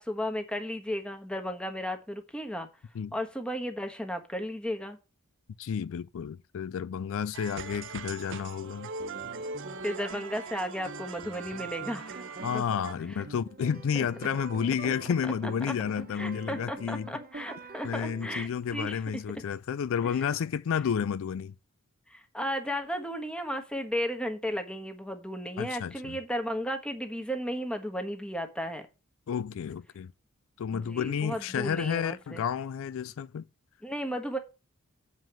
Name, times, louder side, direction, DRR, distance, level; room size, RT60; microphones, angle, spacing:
voice 1, 0.0-2.7 3.1-5.0 9.8-12.6 13.1-13.2 13.9-14.1 15.7-15.8 16.1-19.0 20.3-20.4 22.1-28.9 30.7-32.4 33.8-34.4, equal, 5° left, 1.3 m, -34 dB
voice 2, 5.6-8.9 12.4-17.1 17.8-21.5 25.6-26.2 29.3-30.1 30.6-33.4, left 7 dB, 65° left, 0.4 m, -31 dB
sound 1, 7.3-12.9, right 4 dB, 60° right, 0.8 m, -41 dB
sound 2, 9.0-18.4, right 3 dB, 45° right, 1.3 m, -45 dB
7.4 x 5.2 x 7.4 m
head